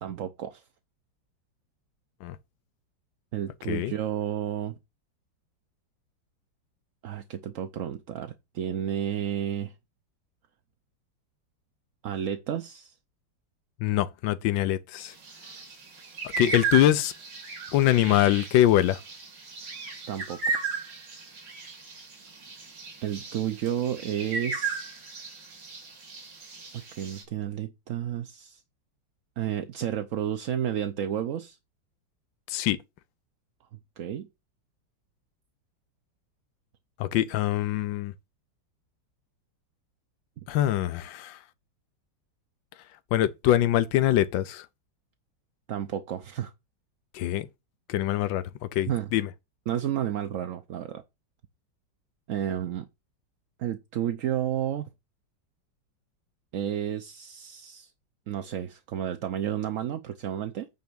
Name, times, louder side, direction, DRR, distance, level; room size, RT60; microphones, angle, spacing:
voice 1, 0.0-0.6 3.3-4.8 7.0-9.7 12.0-12.9 16.4-16.5 20.1-20.7 23.0-24.9 26.7-28.6 29.4-31.6 34.0-34.3 45.7-46.5 48.9-49.1 49.7-51.0 52.3-52.9 53.6-54.9 56.5-57.9 58.3-60.7, right 10 dB, 60° right, 0.9 m, -31 dB
voice 2, 13.8-15.1 16.4-17.1 17.7-19.0 32.5-32.8 37.0-38.1 40.5-41.4 43.1-44.7 47.1-47.5 47.9-48.4 48.7-49.3, left 13 dB, 85° left, 1.4 m, -23 dB
sound 1, 15.0-27.2, right 4 dB, 75° right, 3.0 m, -36 dB
9.3 x 3.4 x 6.9 m
omnidirectional pair, 2.0 m